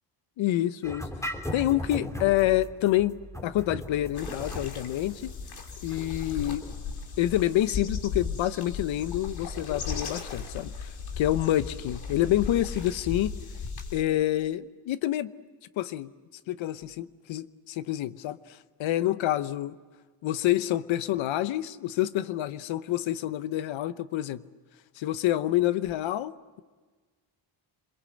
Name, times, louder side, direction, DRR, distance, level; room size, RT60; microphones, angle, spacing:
voice 1, 0.4-1.1 1.5-5.3 5.8-6.6 7.2-13.3 13.9-15.3 15.8-16.1 16.5-19.8 20.2-24.4 25.0-26.3, left 14 dB, 75° left, 14 dB, 1.0 m, -27 dB
sound 1, 0.8-7.6, left 1 dB, 5° left, 3.1 m, -38 dB
sound 2, 4.1-14.0, left 5 dB, 50° left, 2.8 m, -36 dB
27.5 x 21.5 x 7.8 m, 1.4 s
cardioid pair, 90°, 47 cm